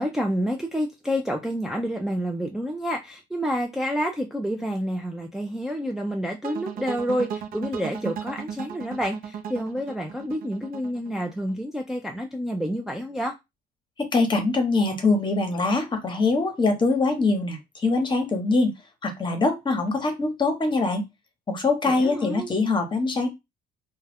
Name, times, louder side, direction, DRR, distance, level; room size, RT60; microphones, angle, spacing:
voice 1, 0.0-13.3 21.8-22.5, equal, ahead, 0.4 m, -29 dB
sound 1, 6.4-11.5, right 7 dB, 60° right, 0.6 m, -36 dB
voice 2, 14.0-17.6 17.8-18.7 19.0-21.0 21.5-23.3, left 3 dB, 30° left, 0.9 m, -23 dB
2.3 x 2.2 x 3.4 m
cardioid pair, 110°, 17 cm